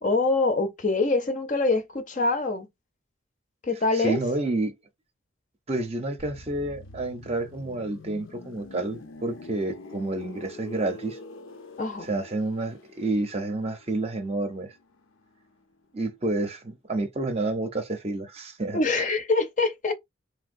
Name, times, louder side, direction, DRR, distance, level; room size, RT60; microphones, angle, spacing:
voice 1, 0.0-2.7 3.6-4.2 11.8-12.1 18.7-19.9, left 3 dB, 40° left, 0.5 m, -24 dB
voice 2, 3.9-4.7 5.7-11.2 12.0-14.7 15.9-18.8, right 2 dB, 30° right, 0.6 m, -29 dB
sound 1, 6.2-15.8 16.1-16.3, left 2 dB, 80° left, 0.6 m, -46 dB
3.3 x 2.6 x 2.5 m
head